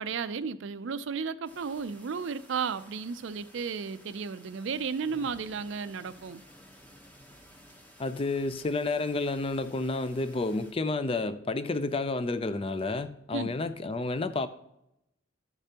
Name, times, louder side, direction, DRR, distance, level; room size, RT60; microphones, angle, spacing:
voice 1, 0.0-6.4 13.3-13.5, right 5 dB, 65° right, 0.4 m, -34 dB
sound 1, 1.4-10.7, equal, 10° left, 0.9 m, -55 dB
voice 2, 8.0-14.5, left 3 dB, 30° left, 0.4 m, -30 dB
13.5 x 6.7 x 2.9 m
head